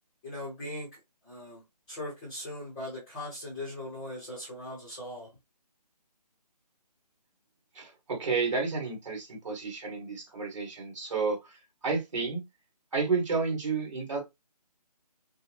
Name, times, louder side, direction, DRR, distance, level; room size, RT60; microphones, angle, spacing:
voice 1, 0.2-0.9 1.2-1.6 1.9-5.3, left 1 dB, 5° left, 0.7 m, -39 dB
voice 2, 7.7-11.6 11.8-12.4 12.9-14.2, right 4 dB, 45° right, 2.5 m, -31 dB
6.4 x 2.2 x 3.1 m
hypercardioid pair, 170°, 21 cm